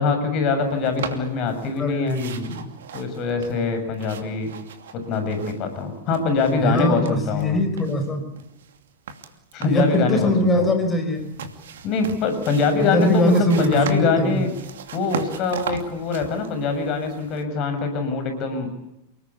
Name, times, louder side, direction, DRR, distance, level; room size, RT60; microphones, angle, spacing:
voice 1, 0.0-2.2 2.9-4.5 4.9-7.6 9.5-10.7 11.8-14.5 14.9-18.7, left 4 dB, 40° left, 7 dB, 6.9 m, -23 dB
sound 1, 0.8-1.8 2.1-5.8 6.1-7.5 7.8-10.0 11.1-17.4, right 6 dB, 60° right, 2.6 m, -37 dB
voice 2, 1.8-2.7 6.6-8.2 9.6-11.3 12.8-14.4, left 1 dB, 15° left, 7 dB, 5.2 m, -22 dB
29.5 x 20.0 x 8.5 m, 0.85 s
figure-of-eight pair, 90°, 0 cm